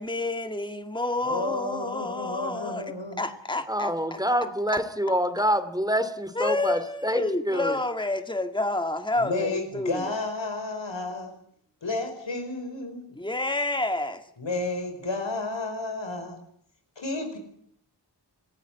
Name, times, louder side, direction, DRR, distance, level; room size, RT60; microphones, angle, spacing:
voice 1, 0.0-4.2 4.7-5.2 6.4-10.2 13.2-14.2, left 2 dB, 10° left, 2.0 m, -29 dB
voice 2, 1.2-3.2 9.2-11.3 11.8-13.0 14.4-16.4 17.0-17.4, left 2 dB, 85° left, 5.2 m, -31 dB
voice 3, 3.7-7.8, equal, 10° right, 2.6 m, -26 dB
26.0 x 14.5 x 9.4 m
wide cardioid pair, 45°, 43 cm